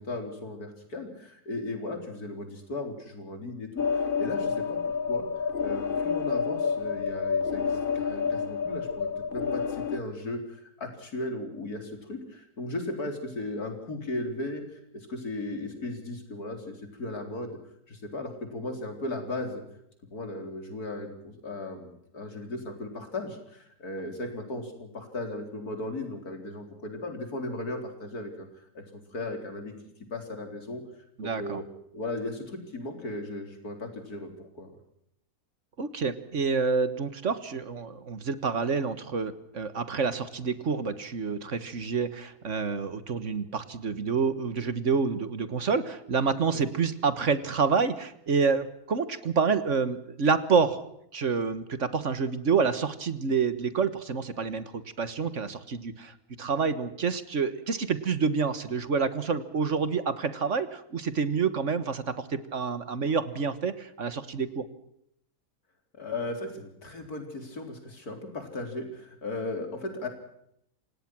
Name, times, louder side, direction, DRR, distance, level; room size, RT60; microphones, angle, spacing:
voice 1, 0.0-5.3 5.6-17.6 17.9-19.6 20.1-29.7 30.1-30.8 31.2-31.6 31.9-34.8 66.0-70.1, left 2 dB, 90° left, 5 dB, 4.6 m, -36 dB
sound 1, 3.8-10.0, left 6 dB, 40° left, 1.0 m, -29 dB
voice 2, 31.2-31.6 35.8-50.8 51.1-64.7, right 5 dB, 55° right, 13 dB, 1.7 m, -28 dB
28.0 x 17.5 x 6.1 m, 0.74 s
omnidirectional pair, 1.6 m